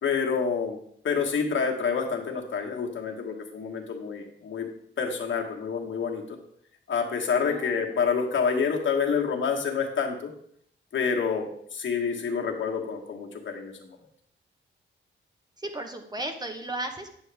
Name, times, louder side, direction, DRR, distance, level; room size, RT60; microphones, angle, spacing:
voice 1, 0.0-0.8 1.0-4.7 5.0-6.2 6.9-10.3 10.9-14.0, left 6 dB, 65° left, 0 dB, 1.4 m, -28 dB
voice 2, 7.4-8.0 15.6-17.2, right 1 dB, 20° right, 4 dB, 1.0 m, -35 dB
9.1 x 6.3 x 3.4 m, 0.66 s
wide cardioid pair, 100°, 21 cm